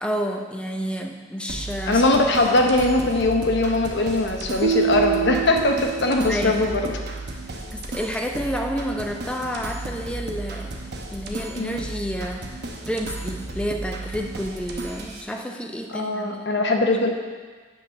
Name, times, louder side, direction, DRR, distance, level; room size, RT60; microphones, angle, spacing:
voice 1, 0.0-2.0 6.3-6.6 7.7-10.8 11.1-12.4 12.9-16.4, equal, 5° left, 2 dB, 0.6 m, -29 dB
sound 1, 1.5-15.2, right 2 dB, 55° right, 0.9 m, -34 dB
voice 2, 1.9-6.9 11.6-11.8 15.9-17.1, left 2 dB, 60° left, 3 dB, 0.9 m, -21 dB
sound 2, 4.6-6.8, right 9 dB, 80° right, 0.6 m, -26 dB
8.6 x 4.0 x 6.2 m, 1.5 s
head